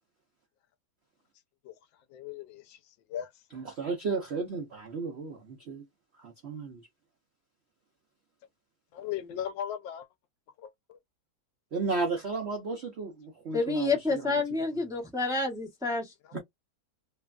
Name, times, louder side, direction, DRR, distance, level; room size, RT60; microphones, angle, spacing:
voice 1, 2.1-2.8 3.1-3.3 8.9-10.1 10.6-11.0, left 10 dB, 80° left, 1.3 m, -37 dB
voice 2, 3.5-5.8 6.2-6.8 11.7-14.3 16.3-16.4, right 4 dB, 75° right, 0.6 m, -34 dB
voice 3, 13.5-16.4, left 3 dB, 5° right, 0.5 m, -29 dB
3.2 x 2.2 x 2.3 m
omnidirectional pair, 2.1 m